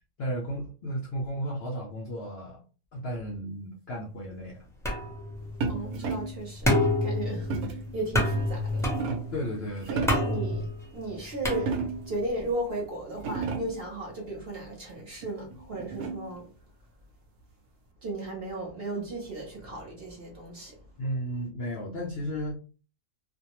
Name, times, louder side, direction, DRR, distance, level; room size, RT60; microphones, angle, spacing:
voice 1, 0.2-2.6 2.9-4.6 9.3-10.1 21.0-22.5, equal, 70° left, 0.6 m, -34 dB
sound 1, 4.8-12.2, left 1 dB, 5° left, 0.3 m, -29 dB
sound 2, 5.6-6.4 7.5-7.9 8.6-9.4 9.8-10.4 11.5-12.2 12.8-12.9 13.1-13.9 15.2-16.4, right 4 dB, 75° right, 1.0 m, -33 dB
voice 2, 5.7-8.9 9.9-10.6 10.9-11.7 12.1-16.5 18.0-20.8, right 1 dB, 50° right, 0.9 m, -35 dB
2.5 x 2.2 x 2.9 m
omnidirectional pair, 1.6 m